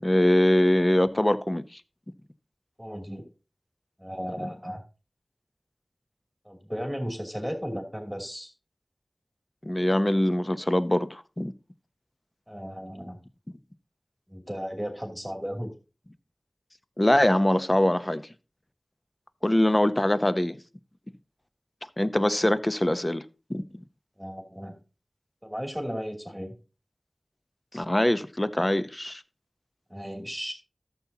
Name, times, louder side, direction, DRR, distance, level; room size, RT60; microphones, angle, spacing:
voice 1, 0.0-1.8 9.6-11.5 17.0-18.3 19.4-20.6 22.0-23.2 23.5-23.6 27.7-29.2, left 1 dB, 25° left, 0.7 m, -23 dB
voice 2, 2.8-3.2 4.0-4.8 6.4-8.5 12.5-13.2 14.3-15.7 24.2-24.7 25.4-26.5 29.9-30.5, equal, ahead, 2.8 m, -35 dB
13.5 x 7.2 x 2.8 m
wide cardioid pair, 50°, 0 cm